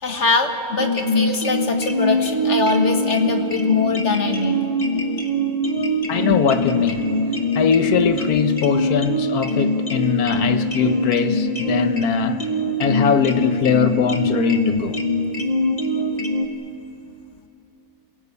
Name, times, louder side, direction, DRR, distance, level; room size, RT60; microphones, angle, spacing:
voice 1, 0.0-4.6, left 3 dB, 50° left, 1.7 m, -23 dB
sound 1, 0.8-16.5, left 1 dB, 30° left, 1.3 m, -22 dB
voice 2, 6.1-7.1 7.5-12.4 12.8-15.0, left 7 dB, 85° left, 1.5 m, -21 dB
27.5 x 17.0 x 8.3 m
omnidirectional pair, 1.6 m